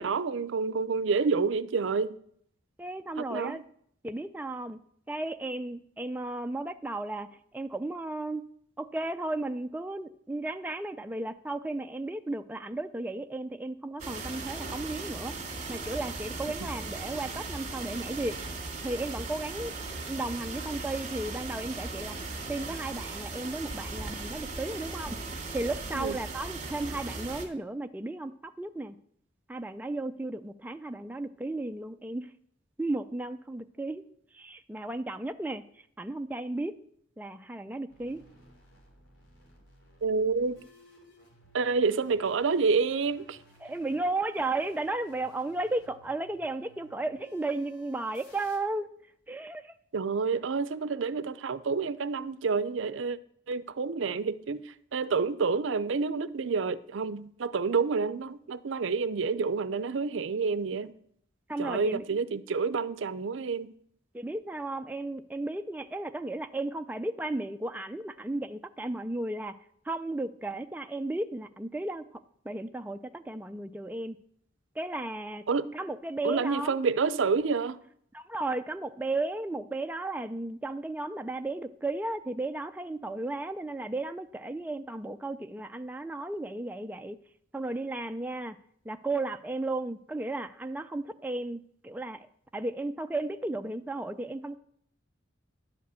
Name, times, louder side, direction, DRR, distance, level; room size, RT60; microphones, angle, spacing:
voice 1, 0.0-2.2 3.2-3.6 25.9-26.2 40.0-40.6 41.5-43.4 49.9-53.2 53.5-60.9 61.6-63.7 75.5-75.7 76.2-77.8, right 4 dB, 70° right, 0.5 m, -28 dB
voice 2, 2.8-3.6 4.0-4.8 5.1-7.3 7.5-8.4 8.8-15.3 15.7-18.4 18.8-19.7 20.1-22.1 22.5-25.2 25.5-29.0 29.5-32.3 32.8-34.0 34.3-35.6 36.0-36.8 37.2-38.2 43.6-48.9 49.3-49.7 61.5-62.2 64.1-69.6 69.9-72.0 72.5-74.2 74.8-75.4 75.7-76.8 78.1-87.2 87.5-88.6 88.9-92.3 92.5-94.6, right 2 dB, 10° right, 0.3 m, -34 dB
sound 1, 14.0-27.4, right 3 dB, 40° right, 2.0 m, -38 dB
sound 2, 37.9-48.6, equal, 65° left, 3.1 m, -58 dB
11.0 x 5.1 x 8.2 m
head